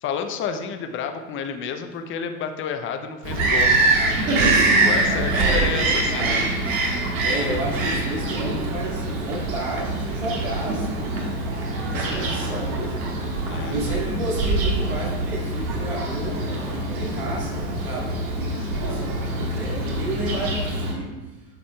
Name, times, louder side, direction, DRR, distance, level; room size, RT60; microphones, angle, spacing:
voice 1, 0.0-3.7 4.7-6.5 12.0-12.4 13.4-13.9 18.6-19.0, left 7 dB, 30° left, 7 dB, 0.6 m, -31 dB
Bird vocalization bird call bird song, 3.2-20.9, right 2 dB, 70° right, 1.6 m, -24 dB
voice 2, 5.3-6.6 7.2-11.5 11.9-13.1 13.7-16.4 16.9-21.1, right 2 dB, 90° right, -3 dB, 2.0 m, -32 dB
8.6 x 5.0 x 2.3 m, 1.1 s
hypercardioid pair, 100°, 42 cm